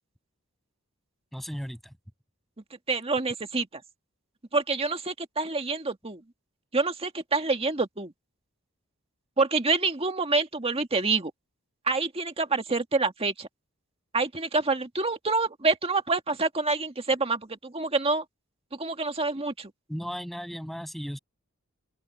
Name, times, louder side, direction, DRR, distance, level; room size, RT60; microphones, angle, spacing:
voice 1, 1.3-1.9 19.9-21.2, equal, ahead, 7.0 m, -35 dB
voice 2, 2.9-3.7 4.5-6.2 6.7-8.1 9.4-11.3 11.9-13.5 14.1-18.2 18.7-19.7, right 3 dB, 30° right, 1.9 m, -27 dB
open air
head